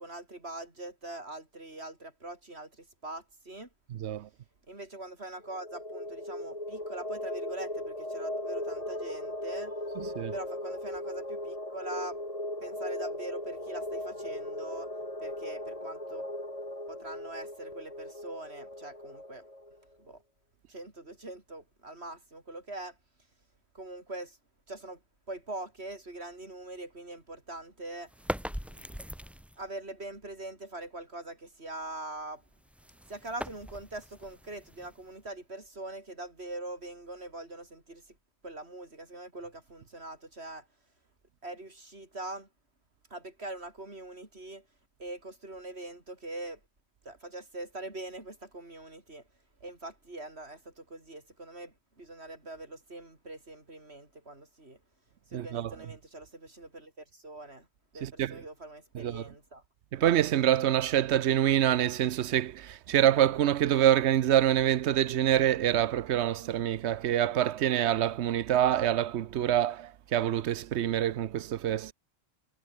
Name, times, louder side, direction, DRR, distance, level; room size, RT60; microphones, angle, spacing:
voice 1, 0.0-3.7 4.7-9.7 10.3-12.2 12.6-14.9 15.2-16.3 16.9-19.4 20.0-20.2 20.7-23.0 23.7-24.4 24.7-25.0 25.3-28.1 28.7-29.0 29.6-32.4 33.1-38.2 38.4-40.7 41.4-42.5 43.1-44.7 45.0-46.6 47.1-49.2 49.6-54.8 55.3-57.7 57.9-59.6, right 2 dB, 70° right, 5.5 m, -43 dB
voice 2, 3.9-4.3 10.0-10.3 55.3-55.7 58.0-58.4 58.9-59.2 59.9-71.9, right 11 dB, 90° right, 1.0 m, -26 dB
sound 1, 5.4-19.8, left 1 dB, 35° left, 4.9 m, -38 dB
sound 2, 28.1-29.7 32.4-35.4, equal, ahead, 1.6 m, -41 dB
omnidirectional pair, 1.1 m